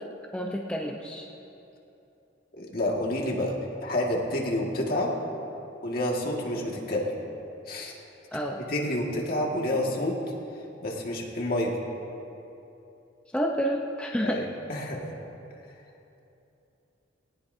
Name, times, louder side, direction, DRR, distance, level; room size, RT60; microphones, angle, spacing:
voice 1, 0.3-1.3 8.3-8.6 13.3-14.4, equal, 5° left, -1 dB, 0.7 m, -29 dB
voice 2, 2.5-3.5 3.8-5.1 5.8-7.2 7.7-7.9 8.7-10.2 10.8-11.8 14.2-15.1, left 1 dB, 50° left, -1 dB, 1.9 m, -29 dB
19.0 x 18.5 x 2.7 m, 2.9 s
head